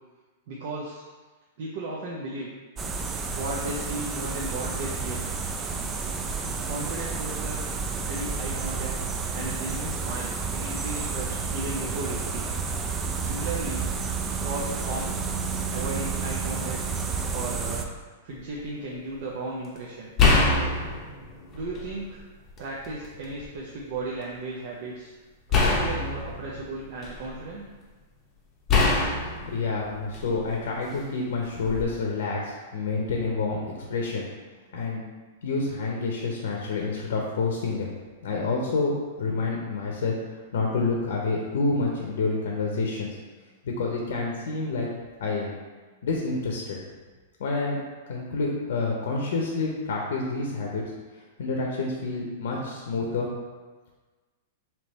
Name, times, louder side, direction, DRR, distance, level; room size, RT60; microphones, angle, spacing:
voice 1, 0.5-1.0 1.6-2.5 3.3-5.2 6.6-7.6 8.1-8.9 9.3-12.6 13.2-13.9 14.4-15.3 15.7-16.8 17.3-17.9 18.2-20.1 21.5-22.2 22.6-25.1 25.5-27.6, right 2 dB, 55° right, -4 dB, 0.6 m, -35 dB
sound 1, 2.8-17.9, right 5 dB, 20° right, 0.3 m, -30 dB
sound 2, 18.3-18.6 20.2-22.0 22.5-23.4 25.5-27.5 28.7-30.6 31.6-31.9, left 3 dB, 25° left, 0.7 m, -24 dB
voice 2, 29.5-34.3 34.7-35.0 35.4-37.9 38.2-43.1 43.6-44.9 45.2-45.6 46.0-46.8 47.4-47.8 48.1-50.8 51.4-53.3, left 3 dB, 75° left, -1 dB, 0.7 m, -28 dB
3.5 x 2.9 x 4.1 m, 1.3 s
hypercardioid pair, 140°, 0 cm